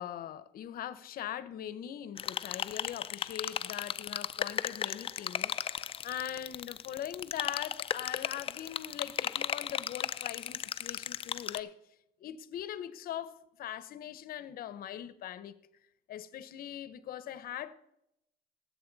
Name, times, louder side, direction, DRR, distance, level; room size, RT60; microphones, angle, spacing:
voice 1, 0.0-11.7 12.2-15.6 16.1-17.7, left 10 dB, 60° left, 0.7 m, -41 dB
sound 1, 2.2-11.6, left 8 dB, 35° left, 0.4 m, -36 dB
18.0 x 7.7 x 4.0 m
cardioid pair, 110°, 17 cm